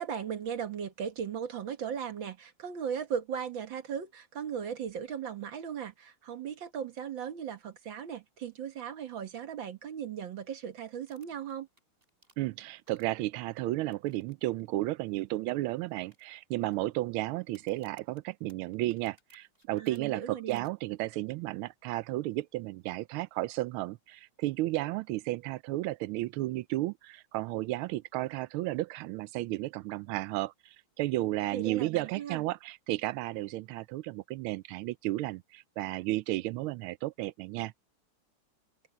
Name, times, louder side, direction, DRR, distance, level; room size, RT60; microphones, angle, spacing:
voice 1, 0.0-11.7 19.8-20.6 31.5-32.4, right 8 dB, 65° right, 2.2 m, -37 dB
sound 1, 11.0-13.4 13.9-14.3 14.6-14.7 15.2-15.3 16.0-16.7 17.4-20.0 20.5-20.7, right 1 dB, 25° right, 6.4 m, -64 dB
voice 2, 12.4-37.7, right 17 dB, 80° right, 1.4 m, -33 dB
open air
omnidirectional pair, 2.3 m